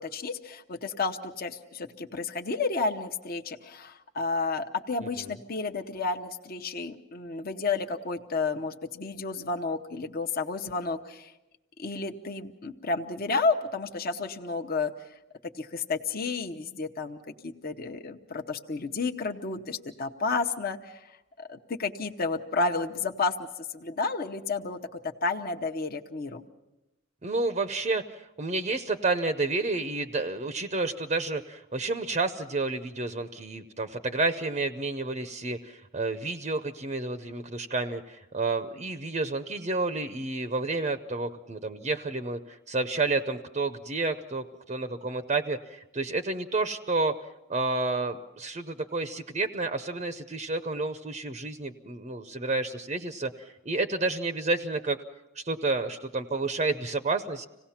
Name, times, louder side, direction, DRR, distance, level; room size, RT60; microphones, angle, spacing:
voice 1, 0.0-11.3 11.8-14.9 15.6-23.5 23.7-26.4, left 3 dB, 45° left, 4 dB, 0.9 m, -31 dB
voice 2, 27.2-47.2 47.5-55.0 55.3-57.5, right 3 dB, 35° right, 8 dB, 0.6 m, -30 dB
26.5 x 17.5 x 5.8 m, 0.97 s
head